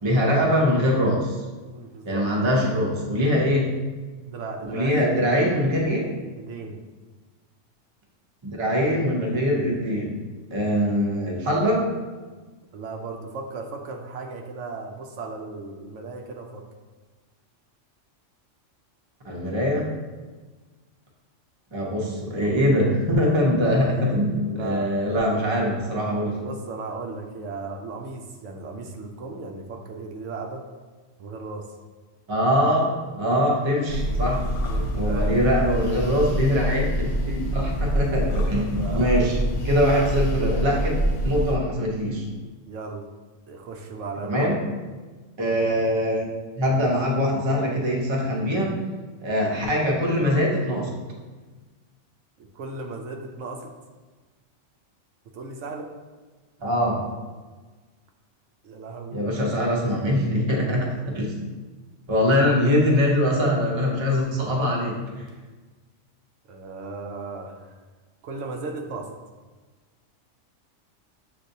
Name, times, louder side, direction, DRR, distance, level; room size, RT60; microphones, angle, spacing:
voice 1, 0.0-1.4 2.0-3.7 4.7-6.1 8.4-10.1 10.5-11.9 19.2-19.9 21.7-26.4 32.3-34.4 35.0-36.8 37.3-39.4 39.6-40.9 41.2-42.3 44.2-44.6 45.4-46.2 46.6-48.8 49.2-51.0 56.6-57.0 59.1-60.9 61.1-61.3 62.1-65.2, equal, 25° right, -2 dB, 0.7 m, -23 dB
voice 2, 1.7-2.3 4.2-5.6 6.4-6.8 12.7-16.6 24.5-25.0 26.4-30.6 31.2-31.8 34.7-35.3 38.5-39.2 42.7-43.1 43.5-44.5 52.4-53.7 55.3-55.9 58.6-59.2 66.5-67.7 68.2-69.2, right 3 dB, 75° right, 2 dB, 0.9 m, -36 dB
sound 1, 33.9-41.6, right 1 dB, 75° left, 0.9 m, -26 dB
7.6 x 2.5 x 2.7 m, 1.3 s
omnidirectional pair, 1.3 m